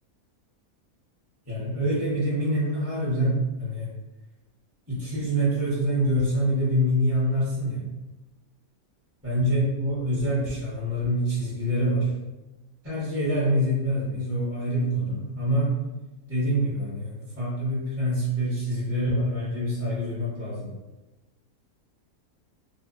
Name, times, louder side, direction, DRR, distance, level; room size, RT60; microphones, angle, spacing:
voice 1, 1.5-3.9 4.9-7.8 9.2-12.1 12.8-15.8 16.3-20.7, equal, 15° right, -9 dB, 0.6 m, -25 dB
3.0 x 2.0 x 2.5 m, 1.1 s
omnidirectional pair, 1.6 m